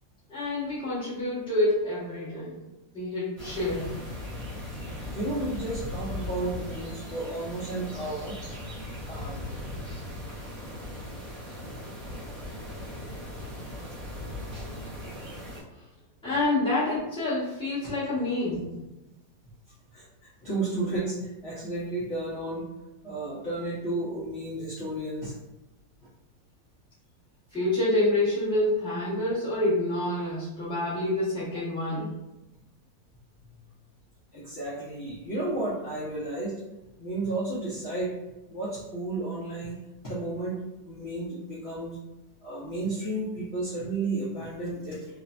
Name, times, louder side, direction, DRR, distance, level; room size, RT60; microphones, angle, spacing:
voice 1, 0.3-2.6 2.9-3.9 16.2-18.7 27.5-32.1, left 1 dB, 5° left, -10 dB, 0.7 m, -27 dB
sound 1, 3.4-15.6, left 1 dB, 65° right, 0.3 m, -38 dB
voice 2, 5.1-8.4 9.1-9.6 14.2-14.3 17.8-17.9 19.9-22.7 23.0-25.3 34.3-36.5 37.0-38.1 38.5-39.8 40.0-40.6 40.8-42.0 42.4-45.1, right 2 dB, 70° left, -9 dB, 0.6 m, -32 dB
3.2 x 2.0 x 2.4 m, 0.98 s
omnidirectional pair, 2.0 m